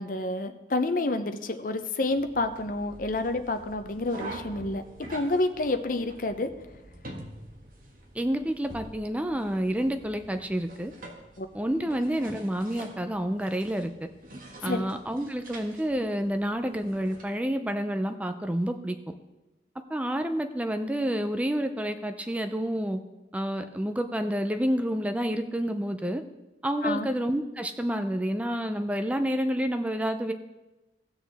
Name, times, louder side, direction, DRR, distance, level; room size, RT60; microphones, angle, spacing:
voice 1, 0.0-4.8 5.1-6.5 11.4-11.5 14.6-14.9 26.8-27.1, left 2 dB, 50° left, 9 dB, 0.7 m, -29 dB
sound 1, 2.0-17.2, right 1 dB, 50° right, 1.6 m, -46 dB
voice 2, 8.1-10.9 11.5-13.9 14.6-19.1 19.9-23.0 23.3-26.2 26.6-30.3, equal, 10° right, 7 dB, 0.4 m, -29 dB
18.0 x 6.5 x 3.4 m, 1.1 s
head